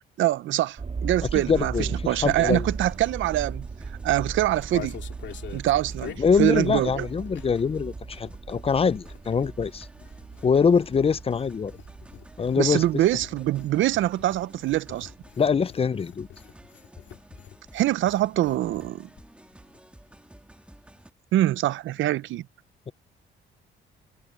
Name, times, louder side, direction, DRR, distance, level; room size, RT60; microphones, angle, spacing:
voice 1, 0.2-3.7 4.0-5.0 5.5-7.1 12.6-15.1 17.7-19.1 21.3-22.5, right 14 dB, 75° right, 0.6 m, -24 dB
sound 1, 0.8-15.0 15.6-15.7, right 5 dB, 35° right, 1.9 m, -38 dB
sound 2, 1.2-21.1, right 1 dB, 5° right, 1.8 m, -51 dB
voice 2, 1.3-2.6 6.2-9.9 10.4-11.7 12.4-12.8 15.4-16.3, left 6 dB, 30° left, 0.5 m, -24 dB
sound 3, 4.0-7.7 8.0-18.9 19.2-19.3 19.5-19.8, left 10 dB, 65° left, 2.2 m, -46 dB
cardioid pair, 90°, 20 cm